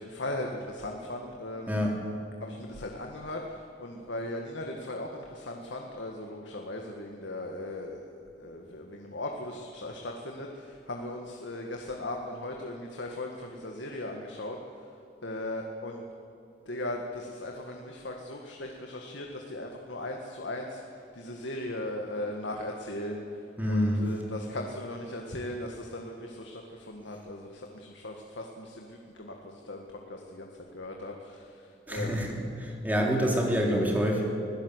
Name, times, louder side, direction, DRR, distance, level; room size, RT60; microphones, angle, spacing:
voice 1, 0.0-1.8 2.4-14.6 15.2-16.0 16.7-23.4 23.7-30.5 30.7-32.3, left 1 dB, 75° left, 1 dB, 1.8 m, -38 dB
voice 2, 1.7-2.0 23.6-24.1 31.9-34.2, equal, 10° right, -1 dB, 3.4 m, -27 dB
25.5 x 16.5 x 8.2 m, 2.7 s
head